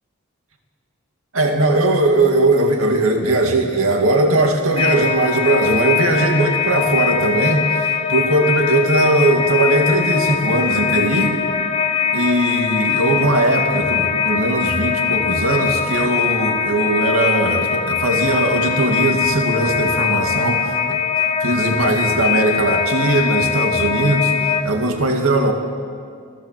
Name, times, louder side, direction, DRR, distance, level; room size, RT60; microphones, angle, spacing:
voice 1, 1.3-11.4 12.1-21.0 21.4-25.5, right 2 dB, 80° right, 3 dB, 2.4 m, -19 dB
sound 1, 4.8-24.6, left 7 dB, 25° left, 1.2 m, -21 dB
29.0 x 18.0 x 7.7 m, 2.2 s
head